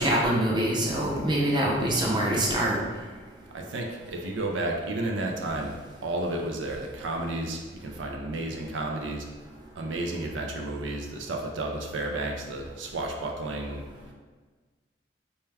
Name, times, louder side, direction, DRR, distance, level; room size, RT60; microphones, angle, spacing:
voice 1, 0.0-2.8, right 1 dB, 25° right, -3 dB, 0.6 m, -24 dB
voice 2, 3.5-5.7 6.0-9.3 9.8-13.8, right 2 dB, 90° right, 1 dB, 0.5 m, -32 dB
4.3 x 2.3 x 3.3 m, 1.4 s
head